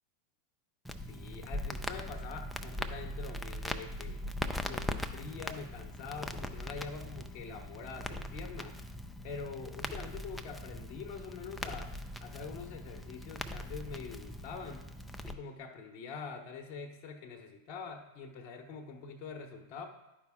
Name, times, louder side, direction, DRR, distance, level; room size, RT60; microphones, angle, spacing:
Crackle, 0.8-15.3, left 1 dB, 5° left, 0.5 m, -40 dB
voice 1, 1.1-4.2 4.6-8.8 9.2-11.9 12.2-14.9 15.2-19.9, left 5 dB, 50° left, 4 dB, 0.9 m, -44 dB
11.0 x 5.0 x 3.6 m, 1.0 s
hypercardioid pair, 95°, 0 cm